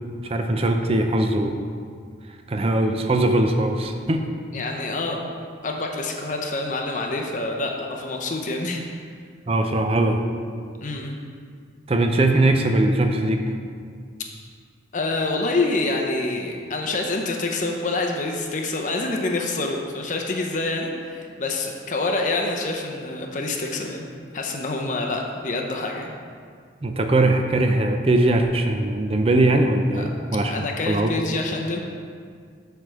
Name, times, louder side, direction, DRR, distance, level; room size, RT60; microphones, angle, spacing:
voice 1, 0.2-1.7 2.5-4.2 9.5-10.3 11.9-13.5 26.8-31.2, right 2 dB, 30° right, 5 dB, 0.5 m, -21 dB
voice 2, 4.5-5.3 5.6-8.8 10.8-11.2 14.9-24.1 24.3-26.1 29.9-30.0 30.4-31.8, left 2 dB, 40° left, 1 dB, 0.6 m, -27 dB
7.7 x 3.4 x 6.2 m, 2.1 s
head